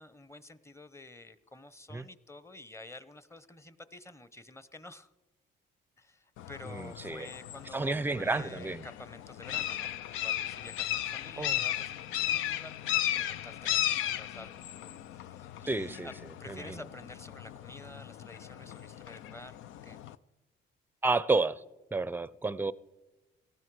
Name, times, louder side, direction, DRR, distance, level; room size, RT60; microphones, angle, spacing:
voice 1, 0.0-5.1 6.0-14.6 15.2-16.1 16.4-19.6 19.8-20.0, left 2 dB, 15° left, 0.8 m, -50 dB
sound 1, 6.4-20.2, left 12 dB, 90° left, 0.5 m, -36 dB
voice 2, 6.6-7.3 7.7-8.8 11.4-11.6 15.7-16.1 16.5-16.8 21.0-21.6 21.9-22.7, right 3 dB, 10° right, 0.5 m, -31 dB
18.5 x 13.5 x 4.8 m
cardioid pair, 90°, 20 cm